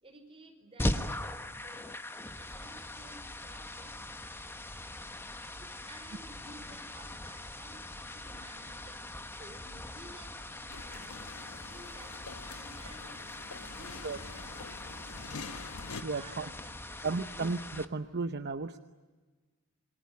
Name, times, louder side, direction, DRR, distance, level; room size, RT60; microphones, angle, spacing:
voice 1, 0.0-2.1 2.4-4.0 5.6-11.3 11.7-15.6 16.1-17.5, right 1 dB, 25° right, 4 dB, 4.9 m, -55 dB
sound 1, 0.8-17.8, left 1 dB, 10° left, 1.2 m, -41 dB
sound 2, 10.7-16.0, left 5 dB, 70° left, 1.0 m, -46 dB
voice 2, 16.0-16.5 17.0-18.8, right 4 dB, 50° right, 9 dB, 0.9 m, -34 dB
27.5 x 22.5 x 9.5 m, 1.4 s
head